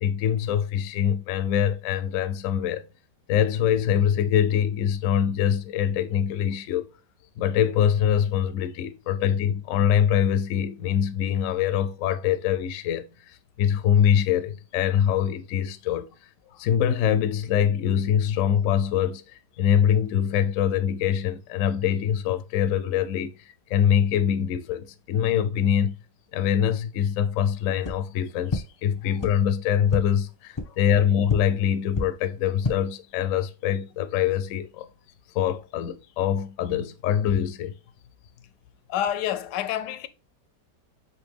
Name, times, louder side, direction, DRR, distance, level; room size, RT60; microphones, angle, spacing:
voice 1, 0.0-2.8 3.3-6.8 7.4-16.1 16.6-26.0 26.3-34.9 35.3-37.7, left 9 dB, 70° left, 0.8 m, -24 dB
sound 1, 27.8-27.9 28.5-28.6 29.2-29.3 29.9-30.0 30.5-30.6 31.3-31.4 31.9-32.0 32.5-32.7, left 3 dB, 25° left, 0.6 m, -26 dB
voice 2, 38.9-40.1, left 11 dB, 85° left, 1.2 m, -29 dB
5.6 x 2.8 x 3.4 m
omnidirectional pair, 1.8 m